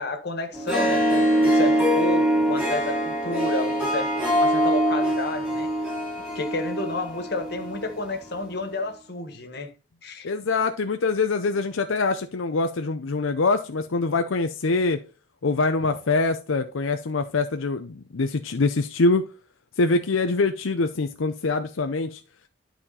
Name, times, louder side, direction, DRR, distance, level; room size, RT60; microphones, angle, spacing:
voice 1, 0.0-5.7 6.3-9.7 10.0-10.3, left 2 dB, 55° left, 1.7 m, -31 dB
Harp, 0.5-8.0, equal, 5° right, 3.4 m, -23 dB
voice 2, 10.2-15.0 15.4-19.3 19.8-22.2, left 3 dB, 85° left, 0.6 m, -24 dB
11.0 x 4.3 x 4.2 m
head